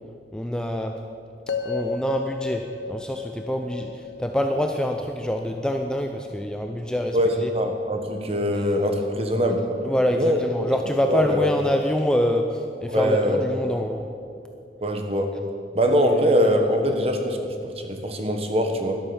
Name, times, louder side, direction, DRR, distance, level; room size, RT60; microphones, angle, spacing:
voice 1, 0.3-0.9 1.6-7.5 9.8-14.1, equal, 5° left, 4 dB, 0.5 m, -25 dB
sound 1, 1.5-5.6, left 4 dB, 70° left, 0.9 m, -33 dB
voice 2, 7.1-9.6 10.1-10.7 11.1-11.4 12.9-13.4 14.8-15.3 15.7-17.4 17.6-18.9, equal, 35° right, 4 dB, 1.4 m, -22 dB
12.5 x 12.0 x 7.1 m, 2.5 s
head